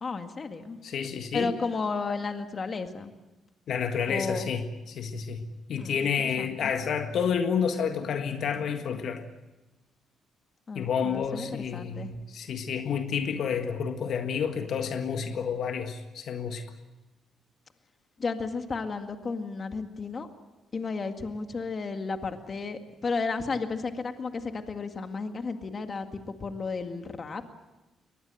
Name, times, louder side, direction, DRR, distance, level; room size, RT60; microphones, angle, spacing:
voice 1, 0.0-0.8 1.3-3.1 4.1-4.5 5.8-6.1 6.4-6.7 10.7-12.1 18.2-20.3 20.7-27.4, left 4 dB, 40° left, 6 dB, 2.0 m, -33 dB
voice 2, 0.8-1.5 3.7-9.2 10.7-16.6, left 7 dB, 65° left, 6 dB, 1.7 m, -30 dB
23.0 x 20.0 x 7.8 m, 1.1 s
cardioid pair, 90°, 0 cm